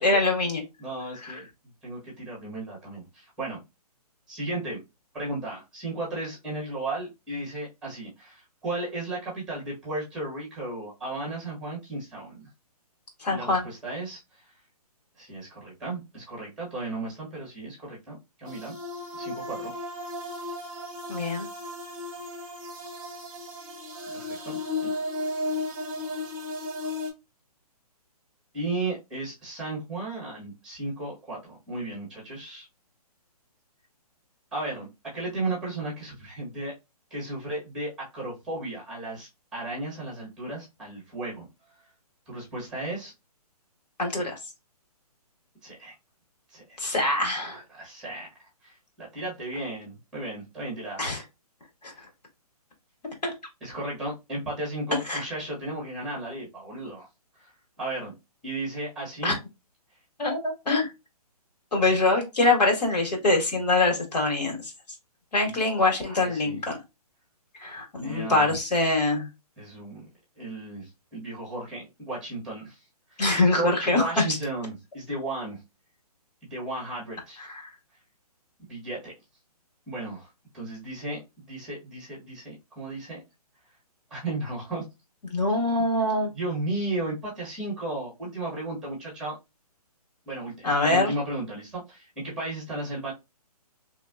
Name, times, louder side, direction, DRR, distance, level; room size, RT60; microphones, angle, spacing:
voice 1, 0.0-0.6 1.2-1.3 13.2-13.6 21.1-21.5 44.0-44.3 46.8-47.6 51.0-51.2 51.8-51.9 53.2-53.3 55.1-55.2 59.2-59.3 60.2-60.9 61.7-64.7 65.3-66.7 67.6-69.3 73.2-74.4 77.4-77.6 85.3-86.3 90.6-91.1, left 2 dB, 85° left, 2 dB, 1.6 m, -24 dB
voice 2, 0.8-1.5 1.8-3.6 4.3-4.8 5.1-12.5 13.3-14.2 15.2-18.7 19.1-19.7 24.1-24.9 28.5-32.7 34.5-36.7 37.1-41.5 42.3-43.1 45.6-45.9 46.5-47.0 47.3-48.3 48.6-51.1 53.6-57.1 57.4-57.5 57.8-58.1 58.4-59.4 65.4-65.5 66.0-66.6 68.0-68.6 69.6-70.0 70.4-72.8 73.1-75.6 76.5-77.5 78.7-79.1 79.9-80.3 80.5-83.2 84.1-84.8 85.7-85.8 86.3-89.4 90.2-93.1, right 2 dB, 5° right, -4 dB, 1.6 m, -35 dB
sound 1, 18.5-27.1, left 2 dB, 30° right, 1.0 m, -34 dB
3.1 x 2.8 x 2.4 m, 0.23 s
hypercardioid pair, 150°, 20 cm